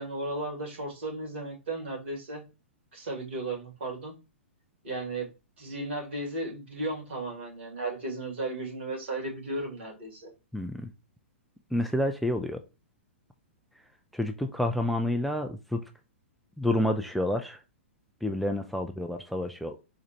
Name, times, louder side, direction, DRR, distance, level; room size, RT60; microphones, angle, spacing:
voice 1, 0.0-2.4 2.9-4.1 4.8-5.3 5.6-10.3, right 2 dB, 60° right, 2.4 m, -35 dB
voice 2, 10.5-10.9 11.7-12.6 14.1-15.8 16.6-17.6 18.2-19.8, left 1 dB, ahead, 0.3 m, -29 dB
4.2 x 2.4 x 4.2 m
figure-of-eight pair, 110°, 7 cm